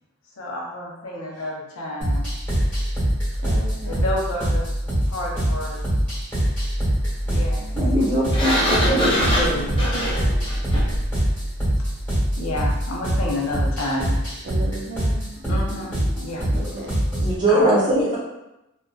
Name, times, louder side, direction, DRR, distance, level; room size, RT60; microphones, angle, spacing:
voice 1, 0.4-2.3 3.8-4.7 5.1-5.9 7.3-7.6 8.6-9.8 12.4-14.2 15.5-16.4 17.5-17.7, left 1 dB, 80° left, -3 dB, 0.7 m, -29 dB
sound 1, 2.0-17.4, equal, 5° left, 1.1 m, -24 dB
sound 2, 2.2-13.3, equal, 60° left, 1.0 m, -30 dB
voice 2, 3.4-4.0 7.6-7.8 14.4-15.3 16.5-17.0, right 2 dB, 50° right, -1 dB, 0.4 m, -36 dB
voice 3, 7.7-9.1 17.2-18.2, right 1 dB, 20° right, -8 dB, 0.8 m, -21 dB
Sliding door, 8.3-11.1, equal, 25° left, 0.5 m, -23 dB
2.6 x 2.2 x 2.3 m, 0.93 s
head